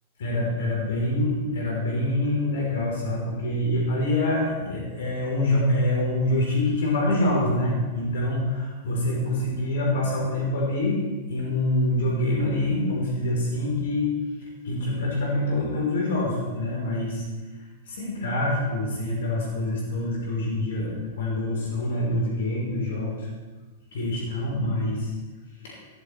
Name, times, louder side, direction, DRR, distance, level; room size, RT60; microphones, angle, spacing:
voice 1, 0.2-11.0 11.3-14.1 14.6-17.2 17.9-23.3 23.9-25.1 25.6-25.8, left 1 dB, 65° left, -2 dB, 3.7 m, -25 dB
21.0 x 12.0 x 3.2 m, 1.3 s
figure-of-eight pair, 100°, 0 cm